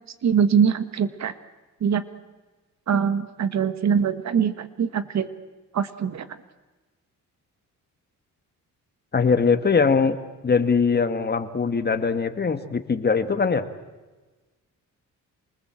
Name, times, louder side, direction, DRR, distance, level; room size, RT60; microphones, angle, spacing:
voice 1, 0.2-1.3 1.8-2.0 2.9-5.3 5.7-6.3, right 7 dB, 55° right, 12 dB, 1.6 m, -23 dB
voice 2, 9.1-10.2 10.4-13.7, left 5 dB, 30° left, 9 dB, 1.7 m, -21 dB
27.5 x 20.0 x 7.6 m, 1.2 s
cardioid pair, 110°, 33 cm